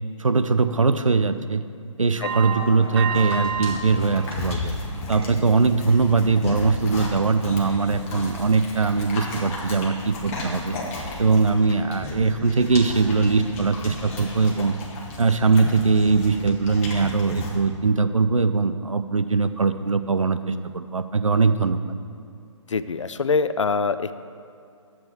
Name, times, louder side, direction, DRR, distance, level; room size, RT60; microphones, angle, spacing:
voice 1, 0.2-1.6 2.0-4.7 5.1-14.7 15.2-21.8, right 4 dB, 80° right, 11 dB, 0.6 m, -21 dB
sound 1, 2.2-3.8 4.2-4.8 5.2-5.4 5.9-6.0, right 6 dB, 50° right, 0.8 m, -29 dB
sound 2, 3.1-17.6, left 2 dB, 25° left, 1.5 m, -34 dB
voice 2, 22.7-24.1, left 4 dB, 65° left, 13 dB, 0.5 m, -24 dB
11.5 x 7.8 x 4.3 m, 2.4 s
figure-of-eight pair, 140°, 17 cm